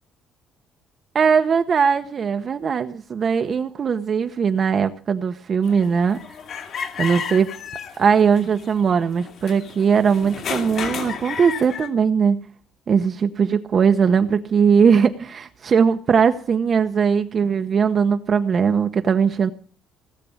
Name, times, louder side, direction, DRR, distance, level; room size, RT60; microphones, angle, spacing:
voice 1, 1.1-6.2 7.0-7.5 8.0-12.4 12.9-19.5, right 6 dB, 40° right, 8 dB, 0.9 m, -19 dB
sound 1, 5.6-11.9, left 6 dB, 50° left, 2.5 m, -32 dB
17.5 x 7.6 x 8.4 m, 0.42 s
cardioid pair, 135°, 0 cm